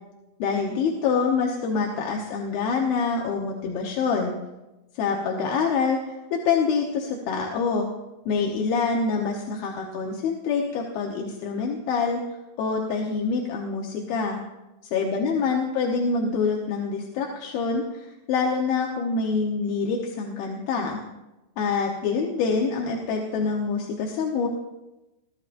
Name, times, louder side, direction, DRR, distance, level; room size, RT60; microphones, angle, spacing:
voice 1, 0.4-4.3 4.9-7.9 8.3-12.2 12.6-14.4 14.9-21.0 21.6-24.5, left 5 dB, 85° left, -1 dB, 3.0 m, -26 dB
23.0 x 14.0 x 2.6 m, 1.0 s
omnidirectional pair, 4.1 m